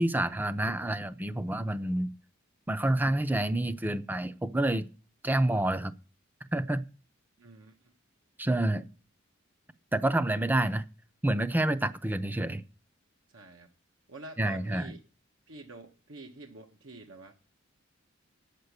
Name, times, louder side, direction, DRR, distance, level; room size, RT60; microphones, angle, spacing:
voice 1, 0.0-2.1 2.7-4.9 5.2-5.9 6.5-6.8 8.4-8.9 9.9-10.8 11.2-12.6 14.4-14.9, right 1 dB, 10° right, 0.5 m, -28 dB
voice 2, 7.4-7.7 13.3-13.7 14.1-15.0 15.5-17.3, right 2 dB, 85° right, 1.1 m, -47 dB
8.8 x 6.7 x 8.0 m
head